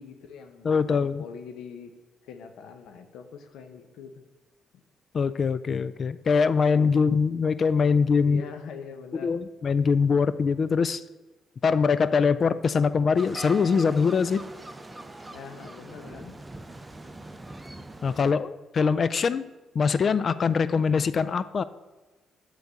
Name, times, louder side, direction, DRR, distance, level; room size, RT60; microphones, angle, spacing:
voice 1, 0.0-1.9 2.2-4.2 8.3-9.3 15.2-16.3, left 6 dB, 80° left, 6 dB, 0.8 m, -43 dB
voice 2, 0.6-1.2 5.1-8.4 9.1-11.0 11.6-14.4 18.0-19.4 19.7-21.6, left 5 dB, 45° left, 15 dB, 0.3 m, -23 dB
sound 1, 13.2-18.3, right 2 dB, 15° right, 0.6 m, -42 dB
8.1 x 3.8 x 6.8 m, 1.2 s
cardioid pair, 90°, 0 cm